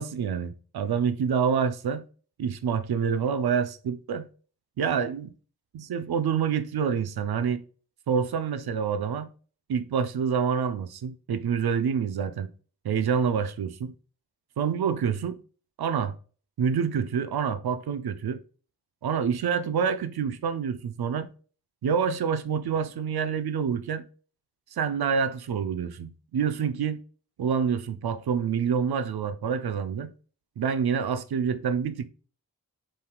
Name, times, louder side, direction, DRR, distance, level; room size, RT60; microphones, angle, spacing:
voice 1, 0.0-2.1 2.4-4.3 4.8-5.3 5.7-7.6 8.1-9.3 9.7-12.5 12.8-13.9 14.6-15.4 15.8-16.1 16.6-18.4 19.0-21.3 21.8-24.0 24.7-27.0 27.4-30.1 30.6-32.0, right 7 dB, 75° right, 0.6 m, -27 dB
5.5 x 3.5 x 2.2 m
wide cardioid pair, 65°, 38 cm